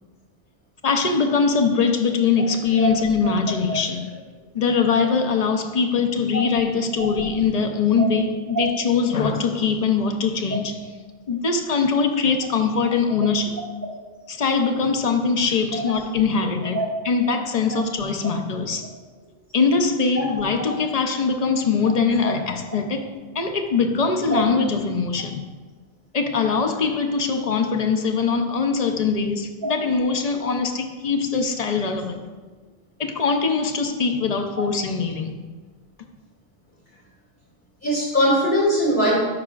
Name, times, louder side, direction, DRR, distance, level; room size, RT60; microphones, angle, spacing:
voice 1, 0.8-4.1 4.5-10.8 11.3-13.6 14.3-18.9 19.5-23.1 23.3-25.4 26.1-32.2 33.0-35.3, left 5 dB, 50° left, 5 dB, 0.6 m, -22 dB
voice 2, 37.8-39.2, right 1 dB, 75° left, -4 dB, 2.6 m, -22 dB
11.5 x 4.8 x 2.4 m, 1.4 s
omnidirectional pair, 1.0 m